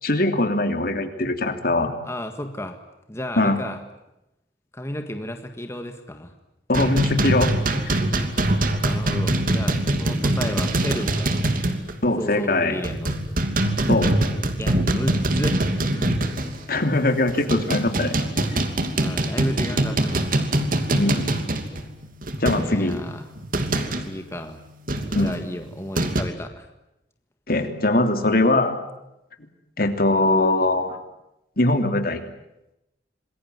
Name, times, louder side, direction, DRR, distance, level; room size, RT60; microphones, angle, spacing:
voice 1, 0.0-1.9 3.4-3.6 6.7-7.5 7.8-8.0 12.0-12.8 13.9-14.1 16.7-18.1 20.9-21.3 22.4-23.0 25.1-25.3 27.5-28.8 29.8-31.0 31.6-32.2, left 2 dB, 55° left, 7 dB, 3.1 m, -21 dB
voice 2, 2.0-2.8 3.1-3.8 4.7-6.3 8.8-11.4 12.2-13.2 14.6-16.2 16.5-16.6 18.9-20.3 22.5-23.3 24.0-24.6 25.1-26.7, left 1 dB, 15° left, 6 dB, 1.7 m, -33 dB
sound 1, 6.7-12.0 12.2-12.4 12.8-16.8 17.3-24.1 24.9-26.2, right 1 dB, 50° right, 2.9 m, -23 dB
27.0 x 21.5 x 9.5 m, 0.88 s
head